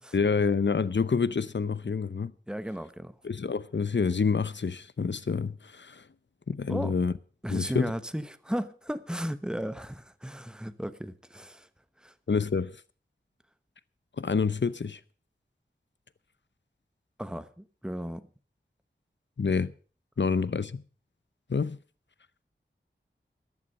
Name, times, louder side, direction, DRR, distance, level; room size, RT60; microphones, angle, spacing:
voice 1, 0.1-2.3 3.2-6.0 6.5-7.1 7.5-7.9 12.3-12.7 14.2-15.0 19.4-19.7 20.2-20.8 21.5-21.8, left 5 dB, 65° left, 0.8 m, -27 dB
voice 2, 2.5-3.1 6.7-6.9 7.4-11.7 12.0-12.1 17.2-18.2, equal, 5° right, 1.0 m, -35 dB
15.0 x 11.0 x 5.4 m
wide cardioid pair, 55°, 20 cm